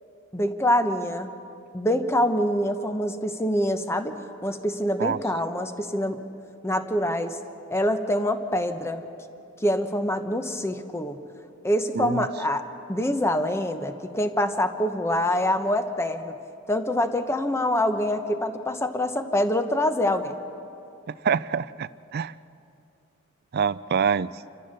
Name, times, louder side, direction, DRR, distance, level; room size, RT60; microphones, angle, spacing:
voice 1, 0.3-1.3 1.7-6.2 6.6-7.4 7.7-9.0 9.6-11.2 11.6-16.4 16.7-20.4, left 1 dB, 10° left, 8 dB, 1.0 m, -25 dB
voice 2, 21.2-22.3 23.5-24.3, right 6 dB, 45° right, 18 dB, 0.4 m, -25 dB
28.5 x 14.0 x 6.7 m, 2.7 s
head